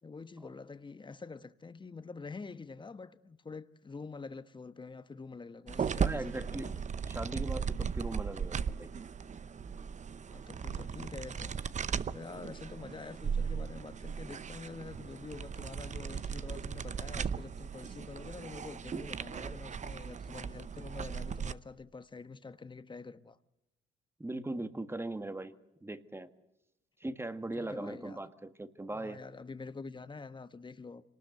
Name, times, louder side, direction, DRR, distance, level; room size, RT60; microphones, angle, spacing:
voice 1, 0.0-6.8 10.3-11.6 12.1-23.4 27.5-28.2 28.9-31.0, left 4 dB, 25° left, 1.2 m, -46 dB
sound 1, 5.7-21.5, right 6 dB, 35° right, 0.8 m, -37 dB
voice 2, 6.0-6.7 7.0-8.9 24.2-25.5 25.8-26.3 27.0-29.2, right 2 dB, 10° right, 1.6 m, -39 dB
26.5 x 19.5 x 7.9 m
cardioid pair, 90°, 20 cm